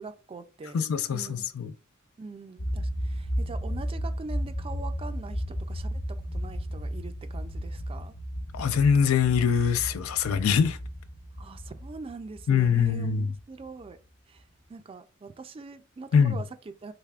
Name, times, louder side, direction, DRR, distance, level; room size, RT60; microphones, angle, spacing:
voice 1, 0.0-0.8 1.1-1.5 2.2-8.1 11.4-14.0 14.3-16.9, right 4 dB, 25° right, 0.3 m, -43 dB
voice 2, 0.7-1.7 8.5-10.8 12.5-13.3 16.1-16.4, left 7 dB, 90° left, 0.4 m, -23 dB
sound 1, 2.6-13.9, equal, 65° left, 0.8 m, -34 dB
3.4 x 3.3 x 2.3 m
head